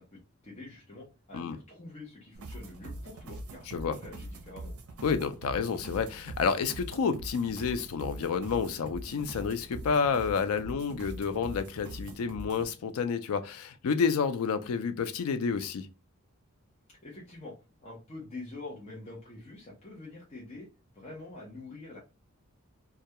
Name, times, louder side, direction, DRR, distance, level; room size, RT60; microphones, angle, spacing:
voice 1, 0.1-4.7 16.9-17.5 17.8-20.7 20.9-22.0, left 2 dB, 30° left, 0.6 m, -46 dB
sound 1, 2.3-12.7, right 1 dB, 75° right, 0.5 m, -43 dB
voice 2, 3.7-4.0 5.0-15.9, left 5 dB, 75° left, 0.4 m, -30 dB
2.2 x 2.2 x 2.7 m
head